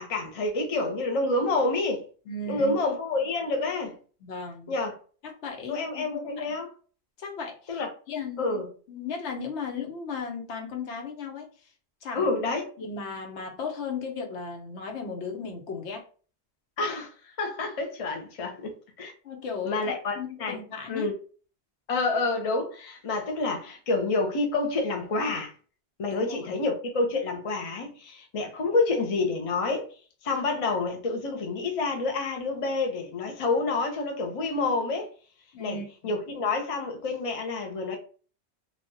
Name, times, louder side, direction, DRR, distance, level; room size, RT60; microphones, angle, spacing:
voice 1, 0.0-2.0 2.5-4.0 4.7-5.0 5.7-6.7 7.7-7.9 8.4-8.7 12.1-12.7 16.8-19.1 19.6-20.6 20.9-21.1 21.9-25.5 26.0-29.9 30.2-35.1 35.6-35.8 36.0-38.0, left 3 dB, 40° left, 0.6 m, -28 dB
voice 2, 2.3-2.8 4.2-4.7 5.2-6.5 7.2-7.8 8.1-8.6 8.9-11.7 12.0-12.3 12.8-16.1 19.2-21.1 26.1-26.6 35.5-36.1, left 4 dB, 80° left, 1.0 m, -36 dB
3.2 x 2.3 x 2.6 m
omnidirectional pair, 1.1 m